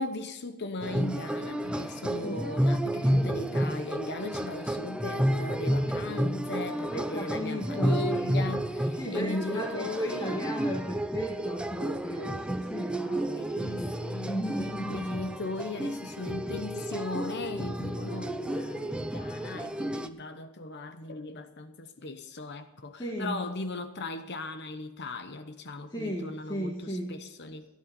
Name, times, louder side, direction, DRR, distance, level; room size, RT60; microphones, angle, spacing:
voice 1, 0.0-10.4 13.4-14.3 14.9-27.7, left 2 dB, 50° left, 1.0 m, -38 dB
sound 1, 0.8-20.1, equal, 5° right, 0.6 m, -31 dB
voice 2, 6.9-8.0 9.0-13.9 14.2-15.2 23.0-23.4 25.9-27.2, equal, 20° left, 1.8 m, -35 dB
16.5 x 10.5 x 5.3 m
head